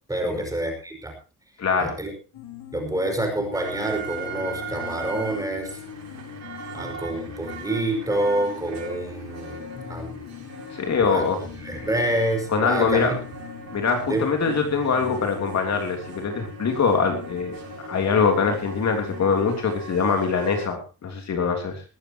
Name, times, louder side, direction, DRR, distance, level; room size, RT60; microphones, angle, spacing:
voice 1, 0.1-1.1 1.8-2.1 2.7-5.7 6.7-10.2 11.0-13.1 14.1-14.3, right 1 dB, 10° right, 3 dB, 5.2 m, -27 dB
voice 2, 1.6-2.0 10.8-11.4 12.5-13.2 13.7-17.6 17.8-21.8, left 5 dB, 40° left, 4 dB, 3.2 m, -23 dB
sound 1, 2.3-19.5, left 8 dB, 70° left, 4.5 m, -41 dB
sound 2, 3.5-20.7, right 4 dB, 40° right, 7.4 m, -40 dB
20.0 x 14.5 x 3.0 m, 0.32 s
cardioid pair, 160°, 39 cm